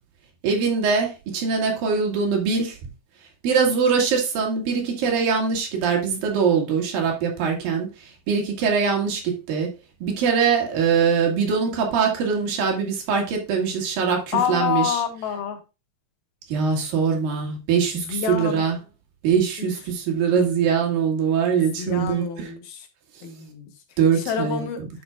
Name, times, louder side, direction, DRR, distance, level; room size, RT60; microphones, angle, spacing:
voice 1, 0.4-2.8 3.4-9.7 10.0-15.0 16.5-18.8 19.2-22.5 24.0-24.9, right 6 dB, 75° right, 0 dB, 3.8 m, -22 dB
voice 2, 14.3-15.6 17.9-18.6 19.6-19.7 21.5-22.9 23.2-23.7 24.3-24.8, left 8 dB, 85° left, 5 dB, 3.3 m, -27 dB
11.5 x 5.7 x 2.4 m, 0.29 s
omnidirectional pair, 4.2 m